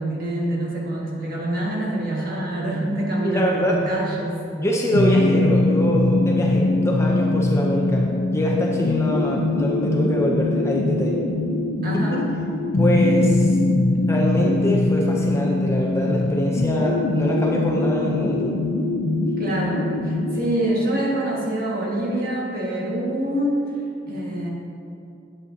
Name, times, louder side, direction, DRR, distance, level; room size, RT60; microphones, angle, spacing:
voice 1, 0.0-4.4 11.8-12.3 19.4-23.6 24.1-24.5, right 1 dB, 55° right, -4 dB, 1.6 m, -25 dB
voice 2, 3.2-3.8 4.5-8.1 8.3-11.2 11.9-12.2 12.8-13.6 14.1-18.5, equal, 15° left, -2 dB, 0.6 m, -24 dB
sound 1, 4.9-20.4, left 2 dB, 65° left, 0.5 m, -22 dB
8.8 x 8.7 x 2.7 m, 2.7 s
head